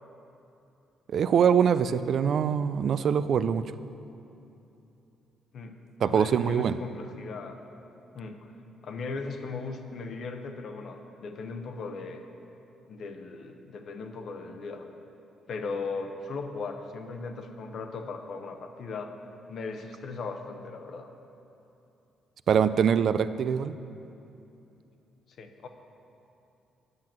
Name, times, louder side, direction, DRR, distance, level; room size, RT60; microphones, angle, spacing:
voice 1, 1.1-3.6 6.0-6.8 22.5-23.7, right 7 dB, 60° right, 13 dB, 0.3 m, -23 dB
voice 2, 6.0-7.5 8.1-8.5 8.8-12.2 12.9-14.9 15.5-19.1 19.5-21.1 25.4-25.7, left 4 dB, 60° left, 5 dB, 0.9 m, -37 dB
9.5 x 5.9 x 7.5 m, 2.8 s
cardioid pair, 90°, 0 cm